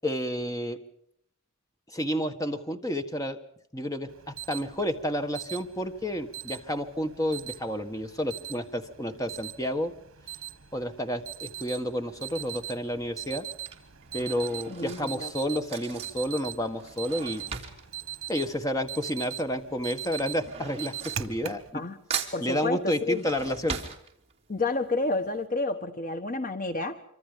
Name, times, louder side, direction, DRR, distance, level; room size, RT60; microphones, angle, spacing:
voice 1, 0.0-0.8 1.9-3.4 3.7-9.9 10.7-13.4 14.1-17.4 18.3-21.8 22.4-23.8, equal, 15° left, 1.5 m, -30 dB
Alarm, 4.1-21.7, right 11 dB, 70° right, 1.7 m, -41 dB
Drawer open or close / Cutlery silverware, 12.1-12.5 13.3-19.2 19.5-21.8 22.1-24.6 25.0-25.1 25.4-25.5, right 6 dB, 30° right, 2.9 m, -39 dB
voice 2, 14.7-15.3 21.7-22.0 22.3-23.2 24.5-27.0, left 3 dB, 40° left, 1.1 m, -30 dB
26.0 x 25.5 x 5.2 m
head